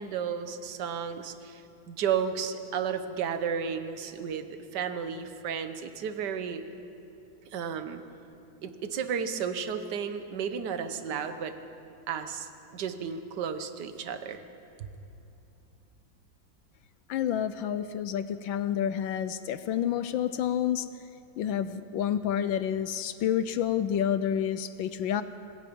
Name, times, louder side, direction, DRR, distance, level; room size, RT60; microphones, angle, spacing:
voice 1, 0.0-6.6 7.5-8.0 8.6-11.5 12.1-14.4 14.8-14.9, right 7 dB, 60° right, 9 dB, 1.7 m, -33 dB
voice 2, 17.1-20.9 21.4-25.2, left 9 dB, 80° left, 12 dB, 1.4 m, -29 dB
27.0 x 20.0 x 5.4 m, 2.8 s
omnidirectional pair, 2.2 m